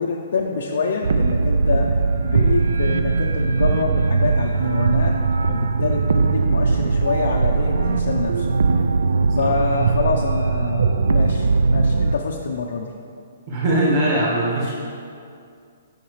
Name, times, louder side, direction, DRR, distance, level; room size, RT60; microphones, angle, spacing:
voice 1, 0.0-5.2 5.5-8.6 9.4-12.9, left 4 dB, 55° left, 0 dB, 0.5 m, -26 dB
sound 1, 1.0-12.2, right 4 dB, 85° right, 0.3 m, -20 dB
voice 2, 13.5-14.7, right 1 dB, 30° right, -6 dB, 1.6 m, -20 dB
8.8 x 5.7 x 3.2 m, 2.4 s
hypercardioid pair, 180°, 0 cm